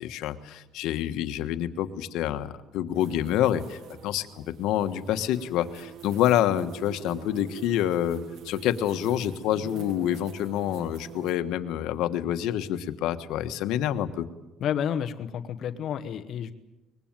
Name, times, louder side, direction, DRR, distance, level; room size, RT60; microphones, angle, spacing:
voice 1, 0.0-14.3, left 11 dB, 85° left, 10 dB, 1.4 m, -27 dB
sound 1, 2.9-11.3, right 9 dB, 60° right, 1.9 m, -45 dB
voice 2, 14.6-16.5, left 9 dB, 55° left, 8 dB, 1.1 m, -30 dB
23.5 x 21.0 x 9.0 m, 1.0 s
cardioid pair, 145°, 0 cm